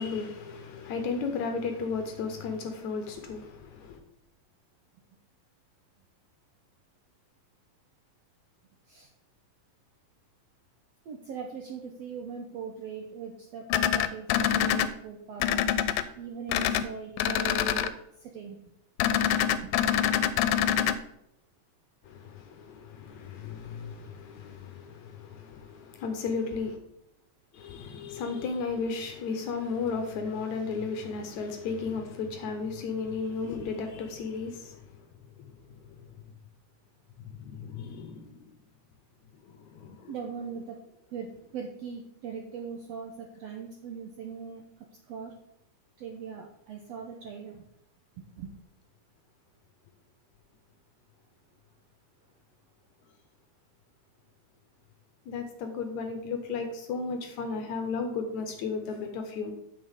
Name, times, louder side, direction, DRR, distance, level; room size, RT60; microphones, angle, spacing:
voice 1, 0.0-4.0 22.0-26.8 27.5-35.0 35.4-36.2 37.2-38.4 39.4-40.1 55.3-59.5, left 4 dB, 70° left, 2.0 m, -34 dB
voice 2, 11.0-15.6 16.2-18.6 19.6-19.8 40.1-40.8 41.1-45.3 46.0-47.6 48.2-48.5, right 6 dB, 75° right, 1.5 m, -40 dB
sound 1, 13.7-14.9 15.4-16.0 16.5-16.8 17.2-17.9 19.0-20.9, left 10 dB, 85° left, 2.3 m, -25 dB
9.2 x 6.3 x 3.7 m
omnidirectional pair, 3.9 m